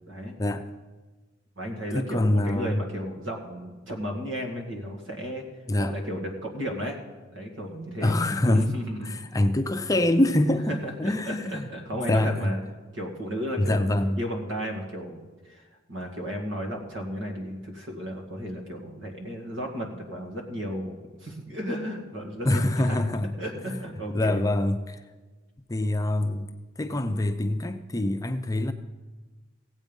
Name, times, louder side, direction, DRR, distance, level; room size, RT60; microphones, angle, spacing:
voice 1, 0.4-0.7 1.9-2.8 5.7-6.0 8.0-11.7 12.1-12.5 13.6-14.2 22.4-23.3 24.1-25.0 25.7-26.5 26.8-28.7, left 1 dB, 20° left, 8 dB, 0.5 m, -25 dB
voice 2, 1.6-5.5 5.8-7.0 7.3-8.2 8.5-9.2 10.7-12.6 12.9-13.8 14.2-15.6 15.9-23.0 23.4-24.4, equal, 75° right, 2 dB, 2.1 m, -34 dB
16.5 x 8.2 x 5.4 m, 1.3 s
head